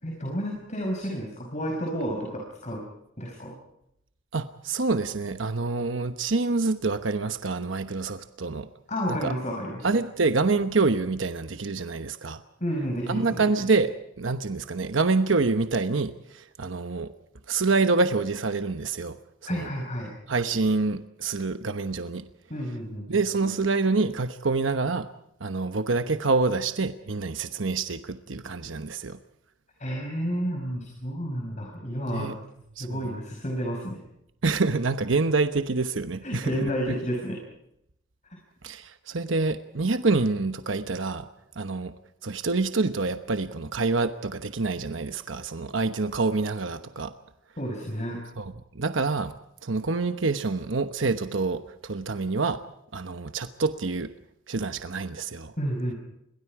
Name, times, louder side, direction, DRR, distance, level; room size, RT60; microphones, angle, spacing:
voice 1, 0.0-2.8 3.2-3.5 8.9-9.8 12.6-13.4 19.5-20.1 22.5-23.1 29.8-32.3 32.8-34.0 36.2-37.4 47.6-48.2 55.6-55.9, equal, 40° left, 0 dB, 5.2 m, -31 dB
voice 2, 4.3-8.7 9.1-9.3 9.8-12.4 13.1-17.1 17.5-19.2 19.5-19.7 20.3-22.3 23.1-25.1 25.4-29.2 32.1-32.4 32.8-33.0 34.4-36.9 38.6-41.3 41.6-41.9 42.2-47.1 48.4-49.3 49.6-52.6 52.9-54.1 54.5-55.5, right 3 dB, 75° right, 9 dB, 1.0 m, -27 dB
29.5 x 23.0 x 4.9 m, 0.80 s
head